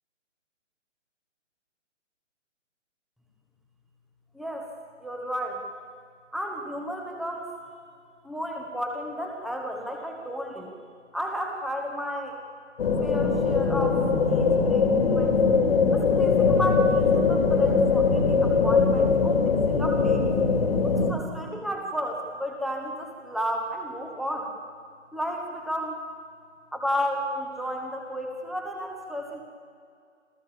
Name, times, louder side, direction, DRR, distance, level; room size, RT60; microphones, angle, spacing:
voice 1, 4.3-4.7 5.0-5.6 6.3-7.5 8.2-10.8 11.1-12.4 13.0-15.4 15.9-20.3 20.8-24.5 25.1-26.0 26.7-29.4, equal, ahead, 2 dB, 1.2 m, -32 dB
sound 1, 12.8-21.1, left 5 dB, 50° left, 2.4 m, -21 dB
27.0 x 15.0 x 7.0 m, 2.3 s
figure-of-eight pair, 140°, 37 cm